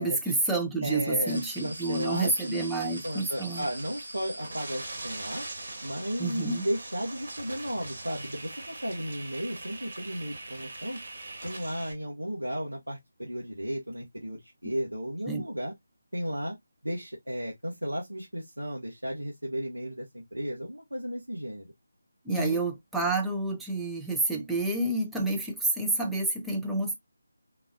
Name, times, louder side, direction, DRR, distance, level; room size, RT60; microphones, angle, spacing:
voice 1, 0.0-3.7 6.2-6.7 15.3-15.4 22.2-26.9, right 2 dB, ahead, 0.5 m, -29 dB
voice 2, 0.8-5.4 5.8-11.0 11.4-15.7 16.1-16.6 16.8-21.6 22.3-22.6, equal, 85° right, 1.1 m, -34 dB
sound 1, 1.3-11.9, right 2 dB, 55° right, 1.4 m, -41 dB
4.0 x 2.4 x 2.4 m
figure-of-eight pair, 155°, 0 cm